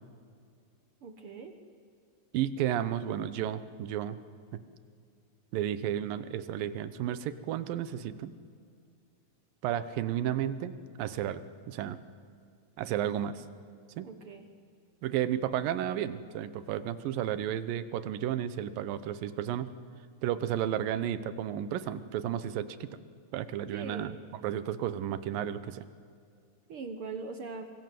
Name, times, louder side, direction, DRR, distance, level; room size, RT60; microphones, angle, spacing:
voice 1, 1.0-1.6 14.0-14.5 23.7-24.1 26.7-27.7, right 4 dB, 60° right, 7 dB, 1.5 m, -41 dB
voice 2, 2.3-4.2 4.5-4.6 5.5-8.3 9.6-12.0 12.8-13.4 14.0-14.1 15.0-19.7 20.2-22.8 23.3-24.2 24.4-25.8, right 10 dB, 90° right, 14 dB, 2.7 m, -32 dB
24.5 x 23.0 x 7.7 m, 2.3 s
omnidirectional pair, 3.9 m